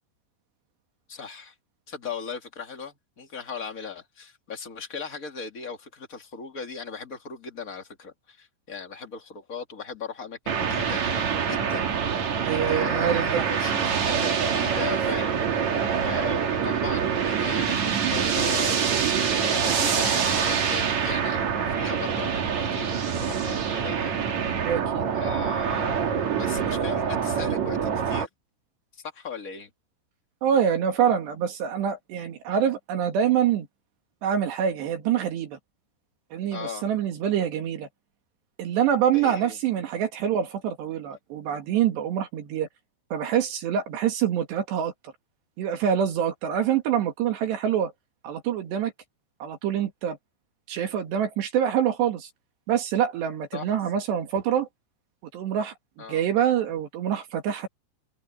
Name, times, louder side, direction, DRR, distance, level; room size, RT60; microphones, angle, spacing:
voice 1, 1.1-1.5 1.9-11.0 11.5-11.9 12.5-15.4 16.0-24.3 25.1-28.3 28.9-29.7 36.5-36.9 39.1-39.6 53.5-53.7 56.0-56.2, left 6 dB, 60° left, 0.8 m, -37 dB
sound 1, 10.5-28.3, right 7 dB, 45° right, 2.8 m, -25 dB
voice 2, 12.4-13.5 24.6-25.0 30.4-33.7 34.2-35.6 36.3-37.9 38.6-42.7 43.1-44.9 45.6-47.9 48.2-48.9 49.4-50.2 50.7-52.3 52.7-54.7 55.3-55.7 56.1-57.7, right 9 dB, 65° right, 4.0 m, -25 dB
omnidirectional pair, 5.5 m